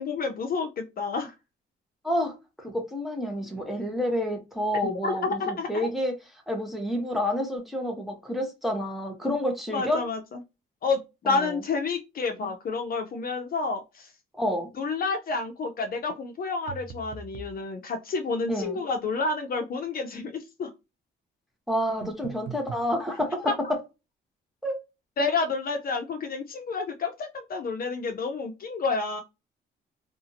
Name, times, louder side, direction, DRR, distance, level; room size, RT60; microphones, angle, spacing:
voice 1, 0.0-1.3 4.8-5.9 9.7-10.4 10.8-14.1 14.8-20.7 23.5-23.6 25.2-29.2, left 4 dB, 50° left, 0.5 m, -29 dB
voice 2, 2.0-6.2 6.5-10.1 11.3-11.6 14.3-14.7 18.5-18.8 21.7-23.8 24.6-24.8, equal, ahead, 0.9 m, -29 dB
sound 1, 16.7-17.6 22.0-22.9, right 6 dB, 75° right, 0.6 m, -40 dB
2.7 x 2.4 x 2.6 m
cardioid pair, 90°, 20 cm